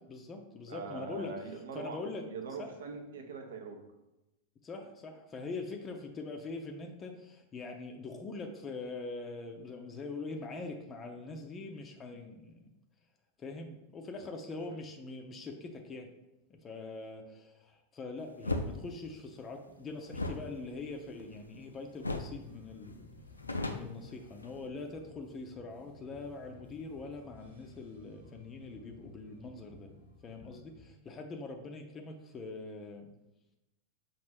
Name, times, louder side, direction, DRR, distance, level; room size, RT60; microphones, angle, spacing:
voice 1, 0.1-2.7 4.6-12.7 13.4-16.1 16.5-23.1 23.6-29.9 30.2-33.1, left 3 dB, 25° left, 3 dB, 0.5 m, -43 dB
voice 2, 0.7-2.0 2.3-3.8, right 4 dB, 60° right, 5 dB, 0.6 m, -42 dB
sound 1, 18.4-18.7 20.1-21.6 22.0-22.4 22.7-22.8 23.1-24.7, left 2 dB, 80° left, 0.4 m, -36 dB
sound 2, 22.3-30.9, left 2 dB, 90° right, 1.1 m, -56 dB
5.9 x 2.5 x 3.4 m, 0.95 s
figure-of-eight pair, 90°, 0 cm